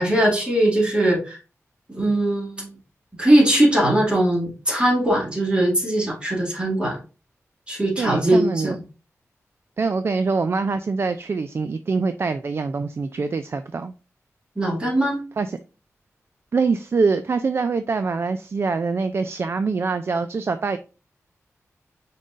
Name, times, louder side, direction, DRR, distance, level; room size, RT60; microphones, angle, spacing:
voice 1, 0.0-1.4 1.9-2.7 3.2-7.0 7.7-8.8 14.6-15.2, right 1 dB, 20° right, -2 dB, 2.1 m, -20 dB
voice 2, 8.0-8.8 9.8-13.9 15.4-15.6 16.5-20.8, right 4 dB, 50° right, 10 dB, 0.3 m, -24 dB
5.5 x 3.8 x 2.5 m, 0.33 s
wide cardioid pair, 85°, 5 cm